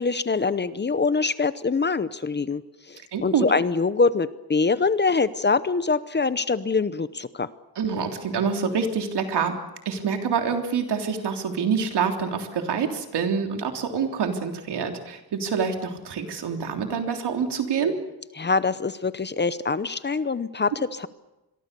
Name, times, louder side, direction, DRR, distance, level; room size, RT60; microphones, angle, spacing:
voice 1, 0.0-2.6 2.9-7.5 18.4-21.1, left 4 dB, 25° left, 15 dB, 0.8 m, -24 dB
voice 2, 3.1-3.5 7.8-9.5 9.9-17.9, right 6 dB, 80° right, 4 dB, 3.4 m, -26 dB
27.0 x 22.5 x 6.9 m, 0.98 s
wide cardioid pair, 150°, 40 cm